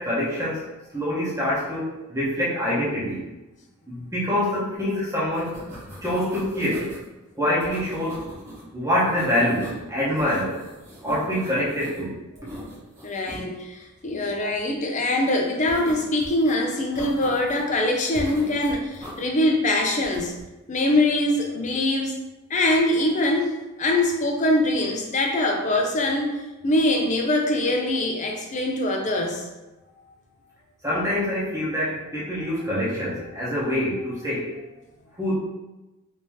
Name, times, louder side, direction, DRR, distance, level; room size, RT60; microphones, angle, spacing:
voice 1, 0.0-3.3 3.9-5.5 6.0-6.9 7.4-8.2 8.7-10.6 11.0-12.2 30.8-34.5 35.2-35.4, left 1 dB, 15° right, -7 dB, 1.0 m, -25 dB
sound 1, 4.8-5.0 5.2-7.0 7.6-8.6 8.9-9.9 10.2-12.0 12.4-13.4 15.7-16.5 17.0-17.7 18.1-19.2 20.0-20.4, equal, 30° right, 1.2 m, -40 dB
voice 2, 13.0-20.3 20.7-22.2 22.5-23.5 23.8-29.5, left 1 dB, 35° left, 1 dB, 0.5 m, -23 dB
3.4 x 2.9 x 3.0 m, 1.0 s
head